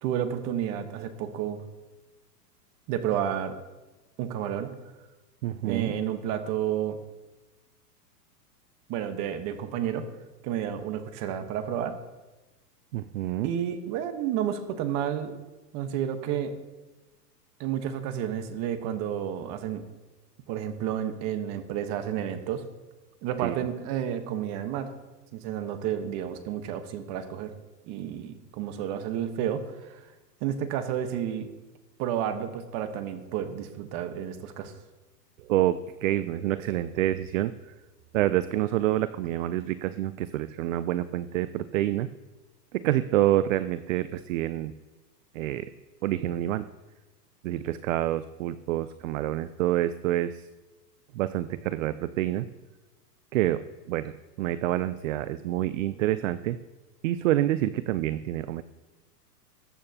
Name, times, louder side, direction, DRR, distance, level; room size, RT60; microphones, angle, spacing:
voice 1, 0.0-1.6 2.9-3.6 4.2-4.7 5.6-7.0 8.9-10.1 10.4-12.0 13.4-15.3 15.7-16.5 17.6-19.9 20.5-22.6 23.2-24.9 25.3-27.5 27.9-30.1 30.4-31.5 32.0-34.7, right 9 dB, 35° right, 8 dB, 1.2 m, -31 dB
voice 2, 5.4-5.9 12.9-13.5 23.4-23.5 35.5-37.5 38.1-42.1 42.7-44.7 45.3-45.7 46.0-46.6 47.4-50.5 51.1-52.5 53.3-53.6 53.9-56.6 57.0-58.6, right 14 dB, 55° right, 14 dB, 0.6 m, -27 dB
21.0 x 8.7 x 2.8 m, 1.1 s
hypercardioid pair, 140°, 49 cm